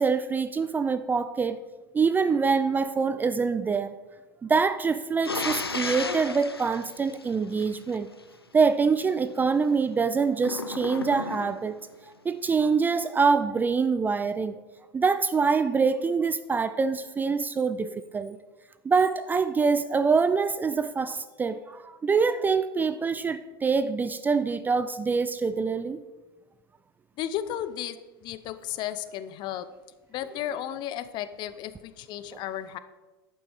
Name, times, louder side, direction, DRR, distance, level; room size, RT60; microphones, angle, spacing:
voice 1, 0.0-1.6 1.9-3.9 4.4-8.1 8.5-11.8 12.2-14.6 14.9-18.4 18.8-26.0 32.3-32.4, right 5 dB, 15° right, 12 dB, 0.4 m, -25 dB
sound 1, 5.2-8.0 10.4-11.8, left 3 dB, 85° left, 0.7 m, -34 dB
voice 2, 27.2-29.6 30.1-32.8, left 11 dB, 40° left, 13 dB, 0.8 m, -34 dB
11.0 x 8.7 x 4.8 m, 1.2 s
figure-of-eight pair, 90°, 12 cm